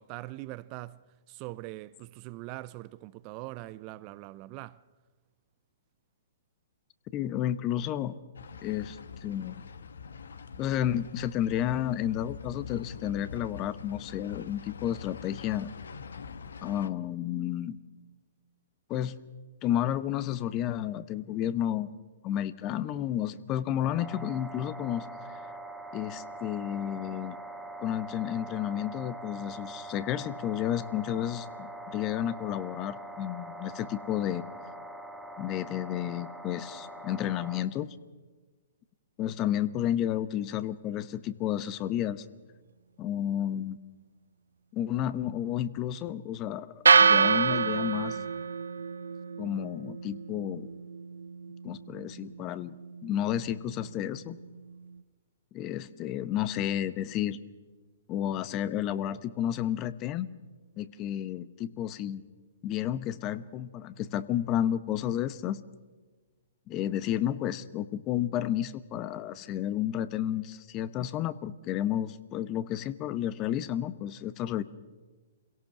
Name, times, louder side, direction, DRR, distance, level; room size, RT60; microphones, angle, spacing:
voice 1, 0.0-4.8, right 18 dB, 35° right, 0.6 m, -42 dB
voice 2, 7.1-8.2 8.6-9.6 10.6-15.7 16.6-17.8 18.9-19.2 19.6-21.9 22.2-25.4 25.9-27.4 27.8-34.4 35.4-38.0 39.2-42.2 43.0-43.8 44.7-48.2 49.4-50.7 51.6-52.8 53.0-54.4 55.5-57.4 58.1-60.3 60.8-62.2 62.6-65.6 66.7-74.6, left 11 dB, 30° left, 1.0 m, -31 dB
sound 1, 8.4-16.9, left 6 dB, 75° left, 1.2 m, -44 dB
sound 2, 24.0-37.6, right 1 dB, ahead, 1.9 m, -43 dB
sound 3, 46.9-55.0, right 5 dB, 80° right, 0.5 m, -28 dB
26.0 x 17.0 x 6.0 m
hypercardioid pair, 125°, 0 cm